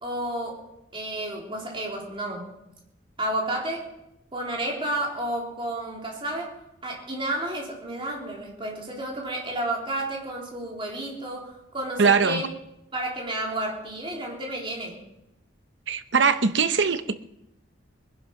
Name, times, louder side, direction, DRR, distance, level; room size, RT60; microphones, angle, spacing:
voice 1, 0.0-0.6 0.9-2.5 3.2-3.9 4.3-6.5 6.8-12.5 12.9-15.0, right 1 dB, 25° right, -1 dB, 3.5 m, -31 dB
voice 2, 12.0-12.4 15.9-17.2, right 5 dB, 65° right, 11 dB, 0.8 m, -21 dB
20.5 x 11.0 x 5.8 m, 0.85 s
head